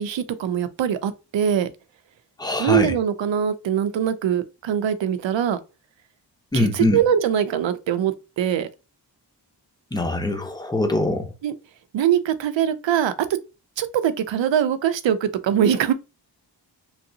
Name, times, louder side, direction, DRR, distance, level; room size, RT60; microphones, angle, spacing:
voice 1, 0.0-1.7 2.6-5.6 6.5-8.7 11.4-11.5 11.9-13.1 13.8-15.9, right 9 dB, 90° right, 0.5 m, -22 dB
voice 2, 2.4-2.9 6.5-7.0 9.9-11.3, left 2 dB, 10° left, 0.7 m, -23 dB
3.3 x 2.7 x 2.6 m
wide cardioid pair, 100°, 43 cm